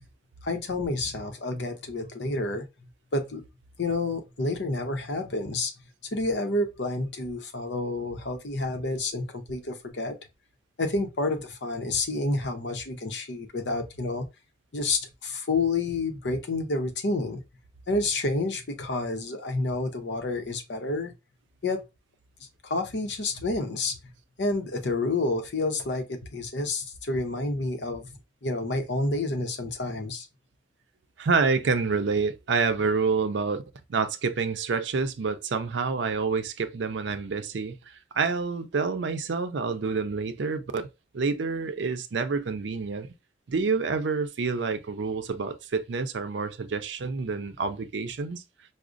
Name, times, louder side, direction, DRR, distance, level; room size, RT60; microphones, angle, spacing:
voice 1, 0.4-3.4 3.8-5.7 6.1-10.1 10.8-14.2 14.7-17.4 17.9-21.1 21.6-21.8 22.6-24.1 24.4-28.1 28.4-30.3, left 2 dB, 75° left, 0.7 m, -29 dB
voice 2, 31.2-33.6 33.9-40.9 41.1-43.1 43.5-48.4, right 4 dB, 80° right, 0.5 m, -28 dB
4.9 x 2.0 x 2.5 m
head